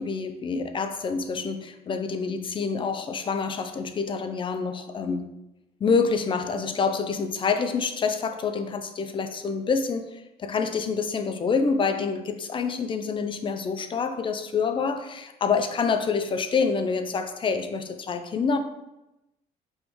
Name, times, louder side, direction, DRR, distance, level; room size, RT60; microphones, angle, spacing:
voice 1, 0.0-5.2 5.8-18.6, left 5 dB, 30° left, 8 dB, 0.4 m, -27 dB
4.9 x 3.1 x 3.1 m, 0.95 s
cardioid pair, 110°, 17 cm